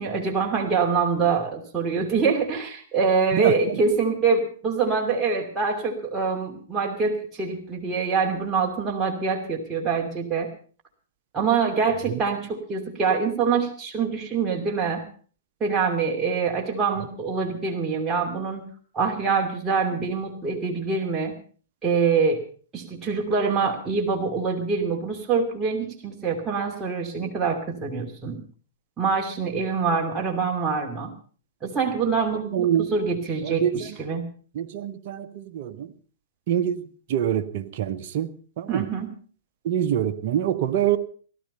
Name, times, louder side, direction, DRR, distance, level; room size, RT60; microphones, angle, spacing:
voice 1, 0.0-10.5 11.3-15.1 15.6-18.6 18.9-21.4 21.8-22.4 22.7-28.4 29.0-31.1 31.6-34.3 38.7-39.1, right 5 dB, 15° right, -1 dB, 2.7 m, -25 dB
voice 2, 3.3-3.8 12.1-12.2 32.4-32.9 33.4-34.0 34.5-35.9 36.5-36.8 37.1-38.3 38.6-38.9 39.6-41.0, right 10 dB, 50° right, 7 dB, 1.2 m, -25 dB
17.0 x 13.0 x 5.5 m, 0.42 s
figure-of-eight pair, 110°, 0 cm